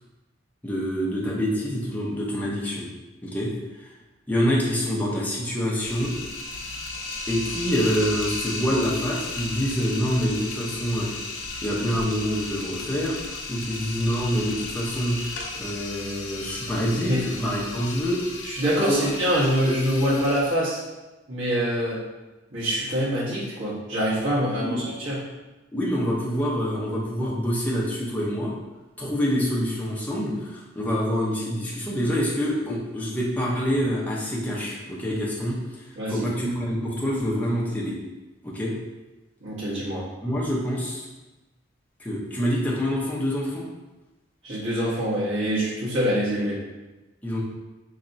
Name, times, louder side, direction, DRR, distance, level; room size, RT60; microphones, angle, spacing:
voice 1, 0.6-2.9 3.2-3.5 3.8-3.9 4.3-6.1 7.3-11.1 11.6-15.2 15.6-18.2 18.9-19.1 24.6-24.8 25.7-28.5 29.0-37.9 38.4-38.7 40.2-41.1 42.0-43.6 47.2-47.4, equal, 10° left, -5 dB, 0.8 m, -26 dB
sound 1, 5.8-20.6, left 3 dB, 70° left, 0.6 m, -35 dB
voice 2, 18.4-20.8 21.3-22.0 22.5-25.2 35.9-36.3 39.4-40.0 44.4-46.6, equal, 90° right, -8 dB, 1.4 m, -25 dB
4.2 x 3.2 x 2.6 m, 1.1 s
head